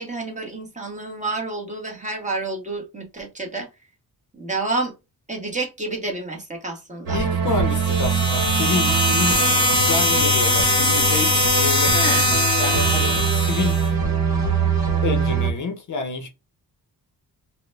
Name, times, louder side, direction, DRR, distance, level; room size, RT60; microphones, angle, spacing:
voice 1, 0.0-3.7 4.3-4.9 5.3-7.2 11.9-12.4, right 3 dB, 20° right, 1.0 m, -29 dB
voice 2, 7.1-9.4 9.8-12.2 12.6-13.8 15.0-16.3, left 4 dB, 50° left, 0.7 m, -28 dB
sound 1, 7.1-15.5, right 4 dB, 60° right, 1.1 m, -23 dB
sound 2, 7.7-13.9, left 1 dB, 10° left, 0.7 m, -21 dB
3.9 x 2.1 x 3.3 m
wide cardioid pair, 155°, 39 cm